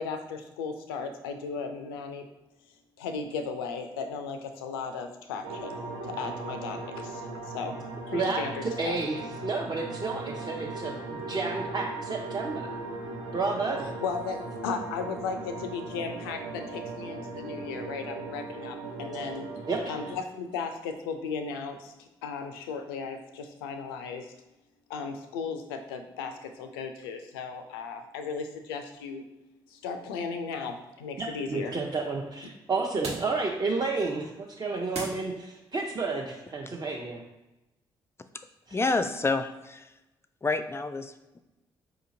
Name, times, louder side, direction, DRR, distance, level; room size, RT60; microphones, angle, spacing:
voice 1, 0.0-2.3 3.0-7.8 8.1-9.0 14.0-19.5 19.9-24.3 24.9-29.2 29.7-31.7, left 5 dB, 85° left, 6 dB, 0.4 m, -36 dB
sound 1, 5.4-20.1, right 3 dB, 80° right, 0.5 m, -38 dB
voice 2, 8.1-12.7 13.3-13.9 19.7-20.0 31.2-37.2 38.7-38.8, right 3 dB, 35° right, -2 dB, 0.6 m, -31 dB
sound 2, 29.8-35.8, right 2 dB, 60° right, 1.1 m, -44 dB
voice 3, 38.7-39.9 40.4-41.4, left 3 dB, 20° left, 10 dB, 0.4 m, -29 dB
4.8 x 2.8 x 2.6 m, 1.0 s
hypercardioid pair, 45°, 12 cm